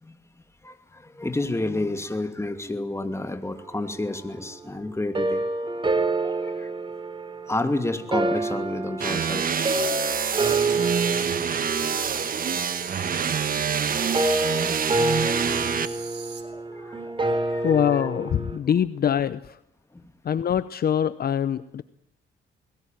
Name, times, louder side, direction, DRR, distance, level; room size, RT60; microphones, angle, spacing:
voice 1, 0.6-5.4 6.2-6.7 7.5-10.8 11.8-11.9 15.4-15.6 16.5-18.1 19.9-20.0, left 2 dB, 15° left, 8 dB, 2.6 m, -31 dB
sound 1, 5.2-18.6, right 2 dB, 25° right, 3.6 m, -28 dB
sound 2, 9.0-15.9, right 7 dB, 45° right, 1.5 m, -26 dB
sound 3, 10.4-16.4, right 7 dB, 60° right, 3.8 m, -41 dB
voice 2, 17.6-19.6 20.2-21.8, left 9 dB, 50° left, 15 dB, 0.8 m, -24 dB
21.5 x 19.0 x 9.2 m, 0.74 s
cardioid pair, 90°, 20 cm